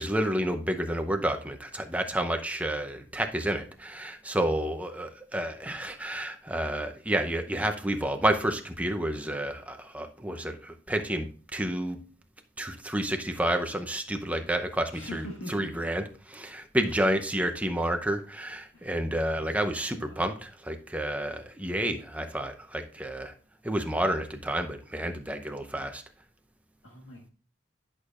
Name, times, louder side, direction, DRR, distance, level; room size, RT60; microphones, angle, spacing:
voice 1, 0.0-12.0 12.6-15.2 15.5-23.3 23.6-26.0, right 1 dB, 5° right, 0.7 m, -30 dB
voice 2, 14.9-15.7 16.8-17.0 18.7-19.0 19.3-20.3 26.8-27.3, left 1 dB, 85° left, 1.5 m, -43 dB
10.5 x 6.4 x 2.4 m
head